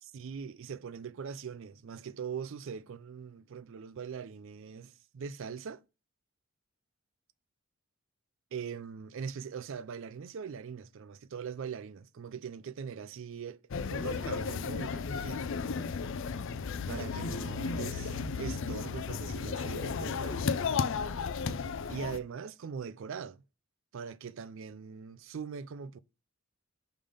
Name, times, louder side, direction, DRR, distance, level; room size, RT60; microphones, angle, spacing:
voice 1, 0.0-5.8 8.5-13.6 13.9-15.4 16.9-20.5 21.9-23.4 23.9-26.0, right 6 dB, 65° right, 0.4 m, -41 dB
sound 1, 13.7-22.2, left 5 dB, 60° left, 0.4 m, -34 dB
5.6 x 3.4 x 5.0 m
head